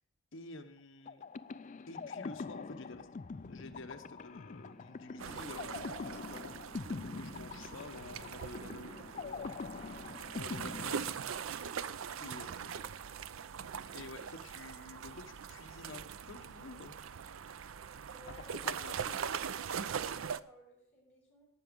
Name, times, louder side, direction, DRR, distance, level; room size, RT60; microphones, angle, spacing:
voice 1, 0.3-1.3 1.9-3.1 3.5-9.5 10.4-11.2 12.2-13.0 13.9-17.0 18.3-18.4 18.6-19.2, left 2 dB, 65° left, 7 dB, 1.1 m, -50 dB
sound 1, 1.1-11.7, left 4 dB, 40° left, 0.4 m, -44 dB
sound 2, 2.3-9.1, right 2 dB, 20° right, 1.1 m, -68 dB
sound 3, 5.2-20.4, right 7 dB, 75° right, 0.5 m, -41 dB
voice 2, 18.1-19.0 19.7-21.5, equal, 15° left, -9 dB, 6.7 m, -58 dB
18.0 x 6.1 x 5.3 m, 0.66 s
head